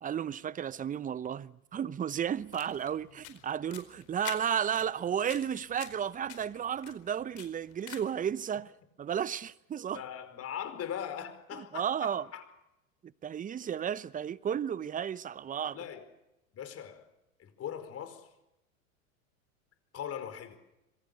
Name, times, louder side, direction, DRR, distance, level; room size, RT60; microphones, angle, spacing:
voice 1, 0.0-8.7 9.0-10.0 11.5-12.3 13.2-15.8, right 8 dB, 20° right, 0.8 m, -33 dB
sound 1, 2.3-8.3, left 14 dB, 60° left, 4.7 m, -48 dB
voice 2, 9.9-12.4 15.7-16.0 16.5-17.1 17.4-18.3 19.9-20.6, left 9 dB, 35° left, 4.9 m, -40 dB
26.0 x 24.5 x 6.8 m
hypercardioid pair, 90°, 42 cm